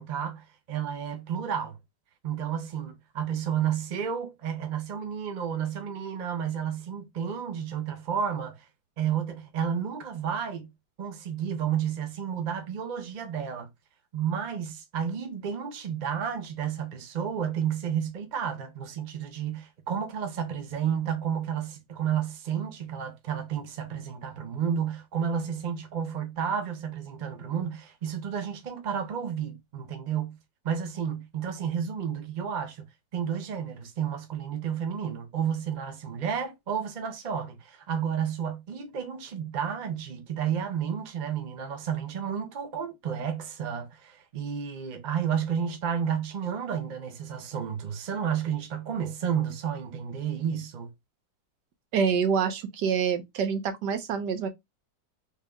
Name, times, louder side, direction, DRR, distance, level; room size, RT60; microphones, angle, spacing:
voice 1, 0.0-1.8 2.2-8.6 9.0-10.7 11.0-13.7 14.1-30.4 30.6-32.9 33.1-50.9, right 8 dB, 45° right, 0.6 m, -31 dB
voice 2, 51.9-54.5, right 6 dB, 80° right, 1.4 m, -26 dB
3.5 x 2.8 x 3.4 m
omnidirectional pair, 1.8 m